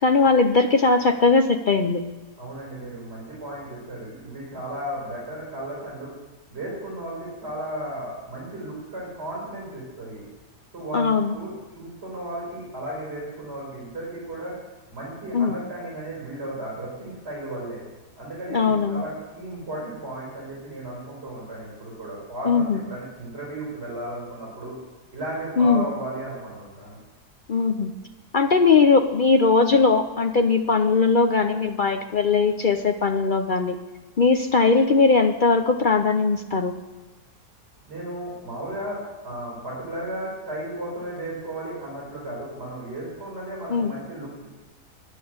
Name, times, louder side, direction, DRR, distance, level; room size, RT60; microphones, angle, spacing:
voice 1, 0.0-2.0 10.9-11.3 15.3-15.6 18.5-19.0 22.5-22.8 25.6-25.9 27.5-27.9 28.3-33.8 34.2-36.7 43.7-43.9, left 4 dB, 75° left, 6 dB, 0.4 m, -19 dB
voice 2, 2.4-6.1 6.5-10.2 10.7-14.5 14.9-17.8 18.2-24.7 25.1-26.9 37.9-39.0 39.2-44.5, right 1 dB, 40° right, -5 dB, 4.5 m, -34 dB
11.0 x 9.8 x 7.8 m, 1.2 s
omnidirectional pair, 1.7 m